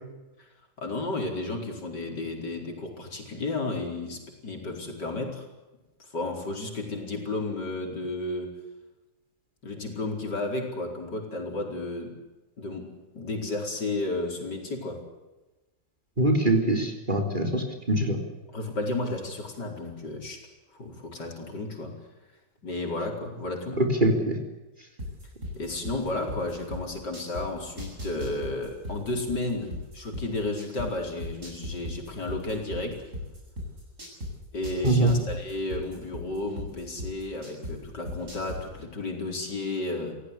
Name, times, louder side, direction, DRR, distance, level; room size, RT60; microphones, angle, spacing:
voice 1, 0.8-5.5 6.0-8.6 9.6-12.2 12.6-15.0 18.5-20.5 20.7-22.0 22.6-23.8 25.6-33.0 34.5-40.2, left 2 dB, 70° left, 2 dB, 5.3 m, -33 dB
voice 2, 16.2-18.2 23.8-24.4 34.8-35.1, right 1 dB, 25° right, 3 dB, 3.9 m, -23 dB
sound 1, 25.0-27.4 27.8-30.9 31.2-34.3 34.6-37.7 38.1-38.6, equal, 45° right, 8.6 m, -36 dB
27.5 x 17.0 x 8.4 m, 1.1 s
omnidirectional pair, 1.9 m